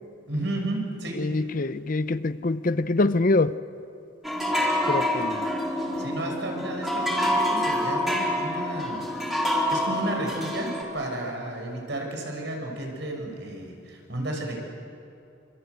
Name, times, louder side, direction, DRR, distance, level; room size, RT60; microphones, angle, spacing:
voice 1, 0.3-1.2 6.0-9.0 9.7-14.6, right 1 dB, 65° right, 6.3 m, -32 dB
voice 2, 1.2-3.5 4.9-5.5, left 2 dB, 45° left, 0.6 m, -24 dB
sound 1, 4.2-10.8, left 1 dB, ahead, 4.4 m, -27 dB
26.5 x 26.5 x 8.2 m
head